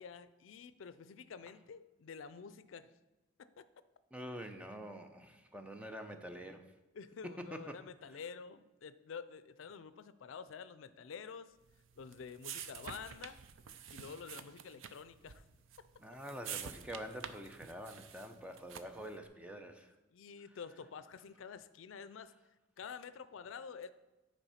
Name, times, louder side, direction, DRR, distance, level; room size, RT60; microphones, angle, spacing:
voice 1, 0.0-2.9 3.4-3.6 6.9-11.5 12.0-13.4 13.9-15.4 20.1-22.3 22.8-23.9, left 6 dB, 80° left, 14 dB, 0.4 m, -49 dB
voice 2, 4.1-6.6 7.2-7.8 16.0-19.9, equal, 5° right, 6 dB, 0.6 m, -46 dB
sound 1, 11.7-19.1, right 8 dB, 80° right, 0.5 m, -49 dB
9.8 x 4.5 x 5.7 m, 1.1 s
head